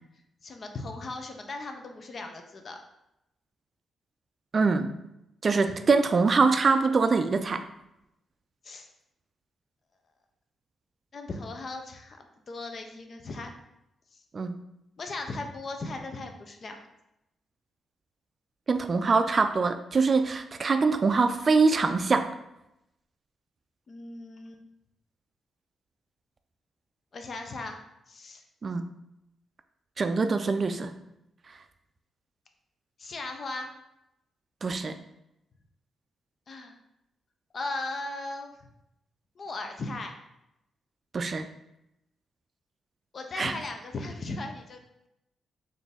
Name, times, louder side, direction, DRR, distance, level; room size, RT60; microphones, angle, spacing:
voice 1, 0.4-2.8 5.7-5.8 8.6-8.9 11.1-12.2 12.5-13.5 14.1-14.2 15.0-16.8 23.9-24.6 27.1-27.8 28.1-28.4 33.0-33.7 36.5-36.8 37.5-38.5 39.4-40.1 43.1-44.8, left 2 dB, 50° left, 5 dB, 0.6 m, -37 dB
voice 2, 4.5-4.9 5.4-7.6 14.3-14.5 18.7-22.3 28.6-28.8 30.0-30.9 34.6-35.0 41.1-41.5 43.4-43.5, right 4 dB, 45° right, 8 dB, 0.3 m, -24 dB
4.0 x 2.6 x 3.4 m, 0.86 s
supercardioid pair, 60°, 0 cm